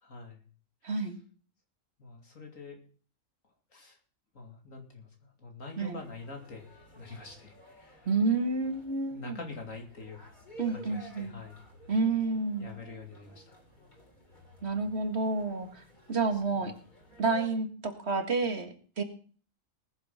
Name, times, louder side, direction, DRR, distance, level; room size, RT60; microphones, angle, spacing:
voice 1, 0.0-0.4 0.9-1.1 2.0-2.9 3.7-4.0 4.3-6.7 6.9-8.1 9.1-10.2 10.7-11.6 12.6-13.6 16.3-16.7, left 3 dB, 80° left, 2 dB, 3.1 m, -45 dB
voice 2, 0.8-1.2 5.8-6.0 8.1-9.4 10.6-11.3 11.9-12.7 14.6-16.7 17.2-19.0, right 3 dB, 55° right, 6 dB, 2.0 m, -30 dB
sound 1, 5.8-17.5, right 1 dB, 35° left, 3.5 m, -53 dB
19.5 x 7.4 x 5.7 m, 0.43 s
omnidirectional pair, 1.4 m